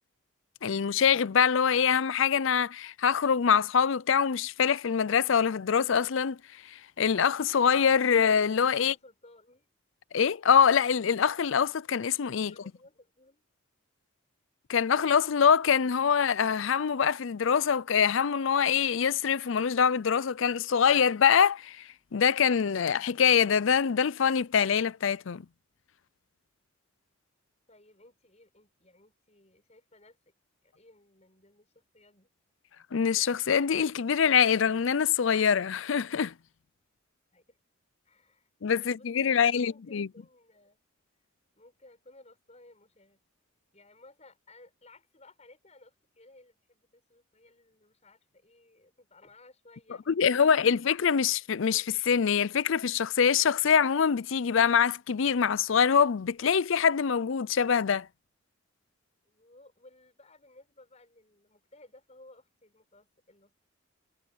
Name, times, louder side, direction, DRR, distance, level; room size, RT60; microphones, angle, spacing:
voice 1, 0.6-6.4 6.7-8.9 10.1-12.5 14.7-25.4 32.9-36.3 38.6-40.1 50.1-58.1, left 7 dB, 65° left, 0.5 m, -24 dB
voice 2, 8.8-9.7 12.4-13.4 27.7-30.2 30.6-32.3 37.3-37.6 38.0-38.5 38.8-40.8 41.5-43.2 43.7-50.7 59.2-63.5, left 2 dB, 30° left, 6.9 m, -58 dB
head